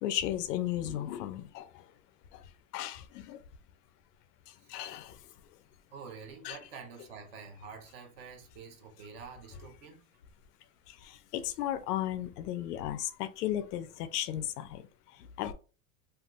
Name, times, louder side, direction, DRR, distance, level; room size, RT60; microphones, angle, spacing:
voice 1, 0.0-1.9 2.3-2.4 2.7-3.4 4.5-5.2 6.4-6.6 10.9-15.5, left 12 dB, 90° left, 0.6 m, -35 dB
voice 2, 4.6-5.0 5.9-10.1, right 5 dB, 40° right, 0.7 m, -48 dB
3.3 x 2.4 x 2.4 m
supercardioid pair, 180°, 46 cm